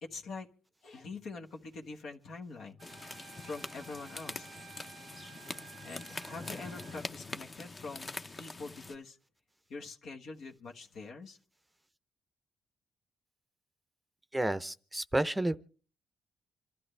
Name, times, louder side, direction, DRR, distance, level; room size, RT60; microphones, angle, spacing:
voice 1, 0.0-0.5 0.8-2.8 3.4-4.5 5.8-8.1 8.3-9.2 9.7-11.4, left 4 dB, 70° left, 1.4 m, -44 dB
sound 1, 2.8-8.9, left 3 dB, 25° left, 0.8 m, -44 dB
Wind instrument woodwind instrument, 2.8-7.1, right 10 dB, 75° right, 0.7 m, -54 dB
voice 2, 14.3-15.6, right 1 dB, 10° right, 0.7 m, -31 dB
27.0 x 12.5 x 3.3 m
cardioid pair, 90°, 0 cm